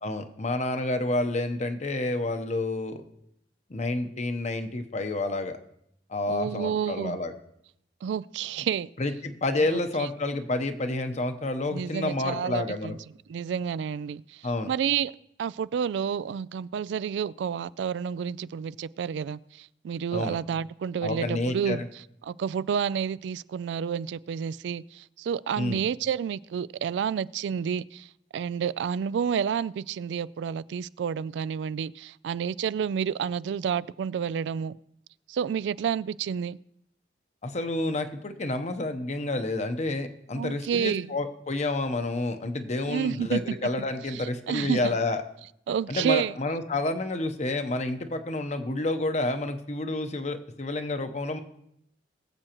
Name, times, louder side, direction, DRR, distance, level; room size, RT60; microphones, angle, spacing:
voice 1, 0.0-3.0 3.7-5.6 6.1-7.3 9.0-13.0 14.4-14.7 20.1-20.4 21.0-21.8 25.6-25.8 37.4-45.2 45.9-51.4, left 2 dB, 40° left, 0.9 m, -29 dB
voice 2, 6.3-7.2 8.0-8.9 9.7-10.1 11.7-13.0 13.3-15.1 15.4-21.8 22.2-34.8 35.3-36.6 40.3-41.1 42.9-43.6 44.1-44.9 45.7-46.3, right 7 dB, 85° right, 0.3 m, -30 dB
21.5 x 7.7 x 3.0 m
head